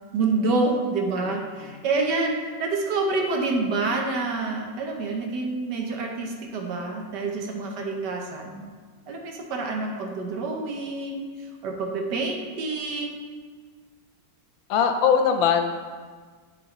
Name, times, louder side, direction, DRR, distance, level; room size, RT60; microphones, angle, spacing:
voice 1, 0.1-8.6 9.1-13.2, right 3 dB, 65° right, 1 dB, 1.4 m, -27 dB
voice 2, 14.7-15.7, left 7 dB, 80° left, 6 dB, 1.3 m, -20 dB
10.5 x 4.7 x 3.0 m, 1.6 s
omnidirectional pair, 2.1 m